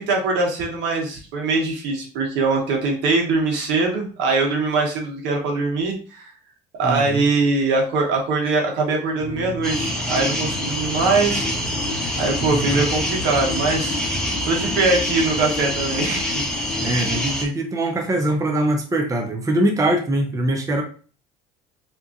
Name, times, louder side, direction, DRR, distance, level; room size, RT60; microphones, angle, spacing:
voice 1, 0.0-6.3 6.8-11.5 12.2-14.0 14.4-16.3, right 3 dB, 70° right, 0 dB, 1.2 m, -22 dB
voice 2, 6.8-7.2 12.4-12.8 16.8-20.8, right 1 dB, 15° right, 3 dB, 0.6 m, -22 dB
sound 1, 9.2-17.2, left 3 dB, 70° left, 0.6 m, -33 dB
sound 2, 9.6-17.4, equal, 5° left, 1.0 m, -26 dB
3.5 x 2.9 x 2.5 m, 0.39 s
supercardioid pair, 85°, 19 cm